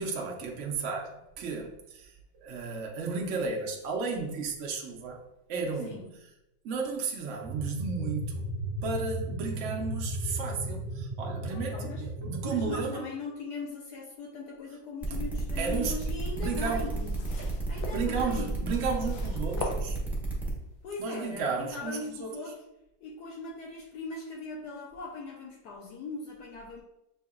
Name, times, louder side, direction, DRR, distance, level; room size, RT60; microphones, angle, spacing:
voice 1, 0.0-2.1 2.4-5.2 5.5-6.1 6.6-8.4 8.8-13.0 15.6-16.0 16.4-16.9 17.7-20.0 21.0-22.3, right 4 dB, 75° right, 0 dB, 0.6 m, -33 dB
sound 1, 7.4-12.8, right 1 dB, 40° right, 0.7 m, -35 dB
voice 2, 11.5-12.0 12.4-17.3 17.7-18.7 20.8-22.6 23.0-26.8, left 3 dB, 70° left, 0 dB, 1.0 m, -40 dB
sound 2, 15.0-20.5, right 2 dB, ahead, 0.3 m, -33 dB
sound 3, 16.3-20.5 21.2-21.3, left 3 dB, 85° left, 1.4 m, -41 dB
6.8 x 2.8 x 2.4 m, 0.86 s
omnidirectional pair, 2.1 m